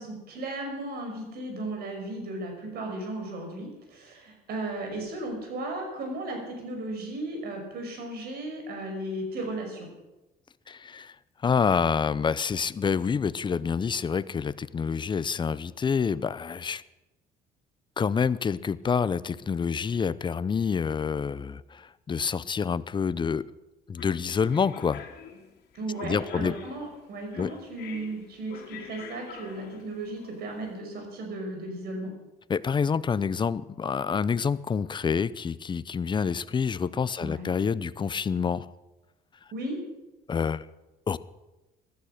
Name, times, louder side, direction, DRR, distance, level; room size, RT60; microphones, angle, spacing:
voice 1, 0.0-9.9 25.7-32.1 37.2-37.5 39.5-39.8, right 2 dB, 65° right, 3 dB, 5.4 m, -35 dB
voice 2, 10.7-11.1 11.4-16.8 18.0-23.4 23.9-25.0 26.0-26.5 27.4-27.5 32.5-38.7 40.3-40.6 41.1-41.2, left 6 dB, 25° left, 17 dB, 0.6 m, -27 dB
sound 1, 24.0-30.7, left 7 dB, 70° left, 2.5 m, -46 dB
15.5 x 13.0 x 6.5 m, 1.0 s
cardioid pair, 110°, 17 cm